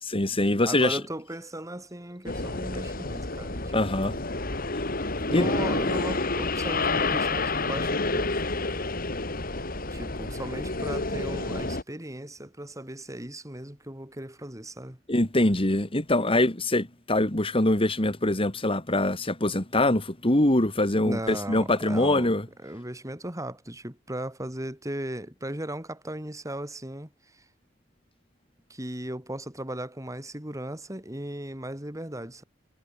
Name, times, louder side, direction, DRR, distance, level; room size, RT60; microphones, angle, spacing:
voice 1, 0.0-1.0 3.7-4.1 5.3-5.5 15.1-22.5, left 1 dB, 30° left, 2.6 m, -24 dB
voice 2, 0.6-4.2 5.3-8.4 9.9-15.0 20.9-22.3 22.6-27.1 28.7-32.4, right 1 dB, 15° right, 3.9 m, -37 dB
sound 1, 2.3-11.8, left 3 dB, 50° left, 3.6 m, -29 dB
head